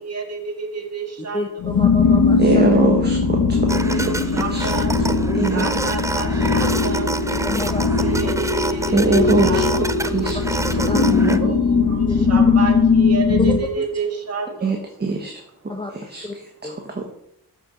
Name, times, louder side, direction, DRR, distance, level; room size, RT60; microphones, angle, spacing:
voice 1, 0.0-1.5 3.7-4.9 5.5-7.1 8.0-9.9 10.2-10.3 11.4-14.8, right 4 dB, 45° right, 1 dB, 1.9 m, -29 dB
voice 2, 1.2-2.6 5.2-5.7 7.4-8.1 10.9-11.0 12.1-12.3 13.8-13.9 15.7-15.9 16.2-16.4 16.6-16.7, left 2 dB, 15° left, 3 dB, 0.8 m, -29 dB
sound 1, 1.6-13.6, left 4 dB, 60° left, 1.4 m, -19 dB
voice 3, 2.4-4.7 5.1-5.6 8.9-10.4 10.7-11.5 14.6-15.4 15.9-17.1, right 2 dB, 25° right, 2 dB, 1.2 m, -23 dB
sound 2, 3.7-11.4, right 2 dB, 10° right, 0.4 m, -28 dB
13.0 x 6.1 x 4.1 m, 0.78 s
wide cardioid pair, 120°, 37 cm